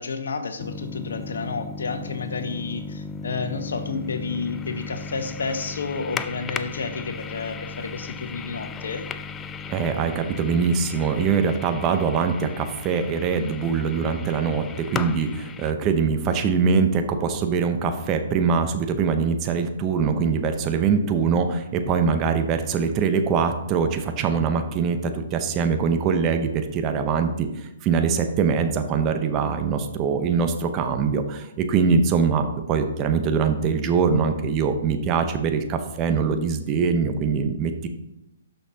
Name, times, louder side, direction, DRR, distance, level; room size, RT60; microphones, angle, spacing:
voice 1, 0.0-9.1, left 4 dB, 75° left, 8 dB, 1.1 m, -31 dB
sound 1, 0.6-15.7, left 5 dB, 15° left, 0.4 m, -36 dB
voice 2, 9.7-37.9, right 5 dB, 25° right, 7 dB, 0.8 m, -23 dB
12.0 x 5.7 x 2.9 m, 0.89 s
hypercardioid pair, 140°, 0 cm